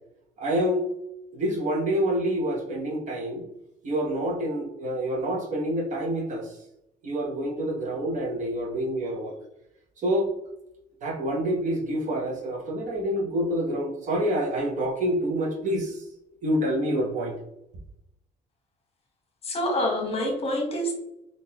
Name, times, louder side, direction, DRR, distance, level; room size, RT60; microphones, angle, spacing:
voice 1, 0.4-0.8 1.3-3.4 3.8-6.6 7.0-9.4 10.0-10.3 11.0-16.0 16.4-17.4, equal, 45° right, 0 dB, 0.9 m, -27 dB
voice 2, 19.4-20.9, left 1 dB, 35° left, 1 dB, 1.1 m, -26 dB
3.7 x 2.6 x 2.8 m, 0.84 s
cardioid pair, 110°, 17 cm